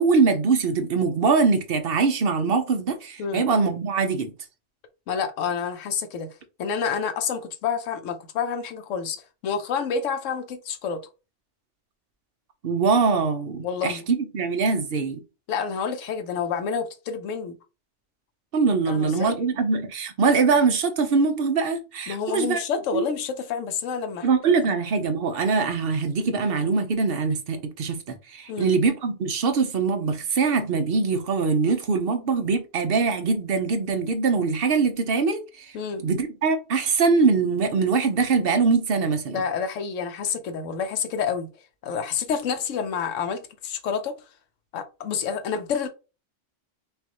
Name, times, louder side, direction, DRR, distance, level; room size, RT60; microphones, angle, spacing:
voice 1, 0.0-4.3 12.6-15.2 18.5-22.6 22.9-23.1 24.2-35.7 36.0-39.4, right 4 dB, 55° right, 0.9 m, -23 dB
voice 2, 5.1-6.3 6.6-11.0 13.6-14.1 15.5-17.6 18.9-19.4 22.1-24.3 28.5-28.7 35.7-36.1 39.3-41.5 41.8-44.1 44.7-45.9, left 6 dB, 90° left, 1.0 m, -28 dB
5.5 x 2.5 x 2.9 m
omnidirectional pair, 1.3 m